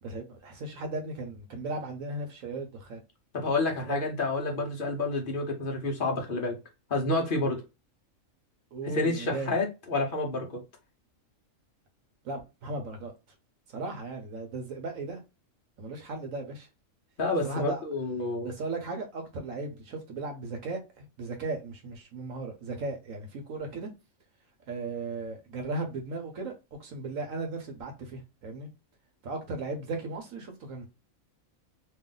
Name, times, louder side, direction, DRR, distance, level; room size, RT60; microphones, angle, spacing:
voice 1, 0.0-3.0 3.9-4.0 7.4-7.6 8.7-9.5 12.2-13.1 13.7-15.2 15.8-16.7 17.4-17.8 18.4-23.9 24.7-28.7 29.2-30.9, right 3 dB, 75° right, 1.4 m, -36 dB
voice 2, 3.3-6.6 6.9-7.6 8.9-10.6 17.2-18.5, left 2 dB, 45° left, 1.1 m, -29 dB
3.3 x 2.6 x 3.8 m
omnidirectional pair, 1.4 m